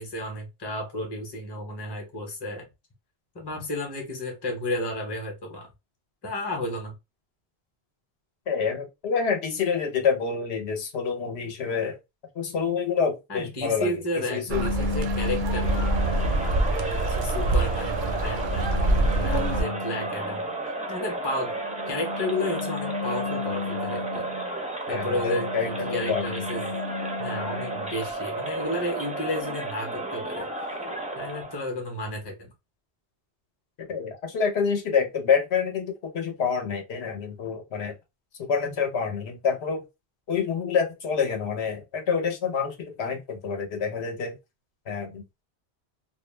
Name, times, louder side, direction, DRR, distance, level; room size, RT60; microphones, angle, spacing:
voice 1, 0.0-2.7 3.3-5.7 6.2-6.9 13.3-16.3 16.7-20.5 20.9-21.5 21.9-24.3 24.9-26.7 27.2-30.5 31.2-32.5, left 1 dB, 25° left, 0.8 m, -32 dB
voice 2, 8.5-12.0 12.3-13.9 14.3-14.6 24.9-26.4 33.8-37.9 38.4-39.8 40.3-44.4 44.9-45.2, left 6 dB, 80° left, 1.0 m, -27 dB
sound 1, 14.5-16.7 17.3-20.4 21.6-24.5 25.0-27.9, left 5 dB, 55° left, 0.4 m, -35 dB
sound 2, 14.5-19.6, right 2 dB, 60° right, 0.6 m, -25 dB
Crowd, 15.4-31.7, right 2 dB, 10° right, 0.4 m, -33 dB
2.4 x 2.1 x 3.1 m
omnidirectional pair, 1.1 m